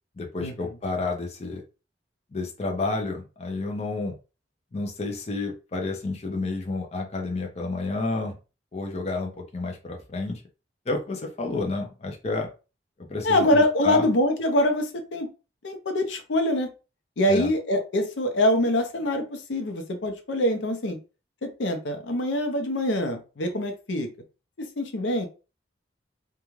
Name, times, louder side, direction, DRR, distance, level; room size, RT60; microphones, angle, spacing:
voice 1, 0.2-1.6 2.3-4.1 4.7-8.4 8.7-10.4 10.9-12.5 13.1-14.1 17.3-17.5, left 3 dB, 35° left, 2 dB, 0.5 m, -30 dB
voice 2, 13.2-15.3 15.6-16.7 17.2-21.0 21.4-24.1 24.6-25.3, left 1 dB, 85° left, 6 dB, 0.6 m, -24 dB
2.4 x 2.2 x 3.1 m, 0.32 s
head